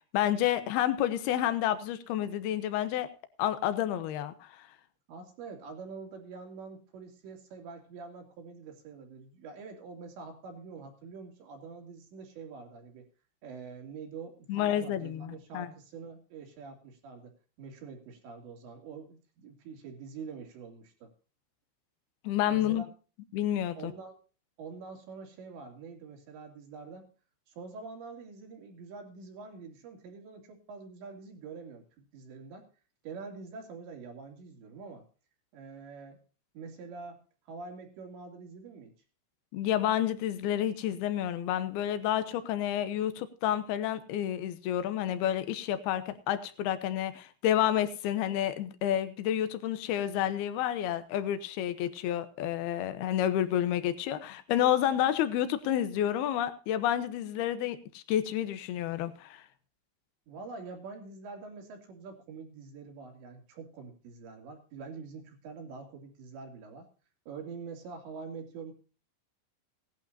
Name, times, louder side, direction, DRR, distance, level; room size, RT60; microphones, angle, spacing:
voice 1, 0.1-3.1 3.4-4.7 14.5-15.7 22.2-22.8 23.3-23.9 39.5-59.4, left 11 dB, 75° left, 12 dB, 2.4 m, -30 dB
voice 2, 5.1-13.1 13.4-17.3 17.6-21.1 22.5-22.9 23.8-24.2 24.6-27.1 27.5-32.7 33.0-35.1 35.5-36.2 36.5-38.9 60.3-66.9 67.3-68.7, right 4 dB, 65° right, 3 dB, 4.7 m, -45 dB
18.0 x 12.0 x 2.7 m, 0.36 s
omnidirectional pair, 5.7 m